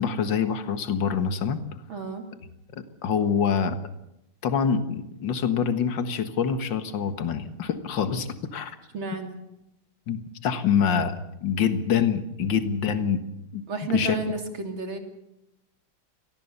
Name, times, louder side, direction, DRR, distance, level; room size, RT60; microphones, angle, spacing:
voice 1, 0.0-1.6 2.7-3.8 4.4-8.8 10.1-11.2 11.4-13.2 13.5-14.2, left 7 dB, 60° left, 10 dB, 2.2 m, -25 dB
voice 2, 1.9-2.2 8.9-9.4 13.7-15.0, right 3 dB, 70° right, 5 dB, 3.9 m, -31 dB
25.5 x 18.5 x 6.7 m, 0.85 s
omnidirectional pair, 2.3 m